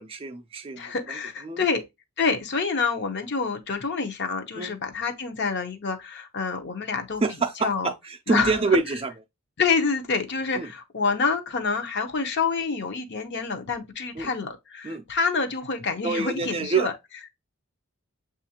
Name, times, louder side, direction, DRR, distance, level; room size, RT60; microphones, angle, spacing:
voice 1, 0.0-1.2 1.4-1.6 4.6-4.8 7.2-9.1 10.6-10.7 14.2-14.3 14.8-15.0 16.0-16.9, right 4 dB, 25° right, 0.4 m, -27 dB
voice 2, 0.8-1.8 2.2-7.2 7.6-7.9 8.3-8.6 9.6-16.9, left 4 dB, 50° left, 0.7 m, -27 dB
7.1 x 2.5 x 2.8 m
head